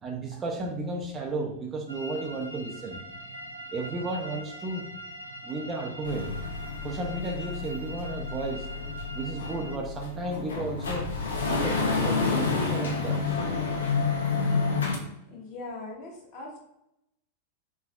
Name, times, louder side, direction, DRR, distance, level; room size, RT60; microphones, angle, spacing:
voice 1, 0.0-3.0 3.7-4.9 5.4-6.4 6.8-8.7 9.1-11.1 11.4-13.4, right 2 dB, 25° right, 1 dB, 0.6 m, -33 dB
sound 1, 1.9-9.8, equal, 80° right, 0.5 m, -42 dB
sound 2, 6.0-15.0, left 4 dB, 65° left, 0.7 m, -29 dB
voice 2, 15.2-16.6, left 2 dB, 45° left, -2 dB, 1.3 m, -40 dB
4.6 x 3.3 x 2.3 m, 0.82 s
figure-of-eight pair, 90°, 0 cm